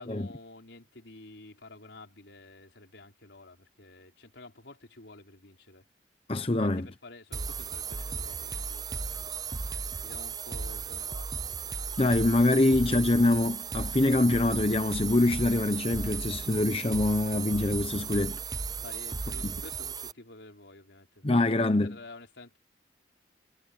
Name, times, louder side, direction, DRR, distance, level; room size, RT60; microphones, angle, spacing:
voice 1, 0.0-5.8 6.6-9.0 10.0-11.3 18.8-22.6, left 2 dB, 90° left, 5.1 m, -50 dB
voice 2, 6.3-6.9 12.0-18.4 19.4-19.5 21.2-22.0, left 2 dB, 30° left, 0.8 m, -25 dB
sound 1, 7.3-20.1, right 5 dB, 20° right, 0.5 m, -35 dB
head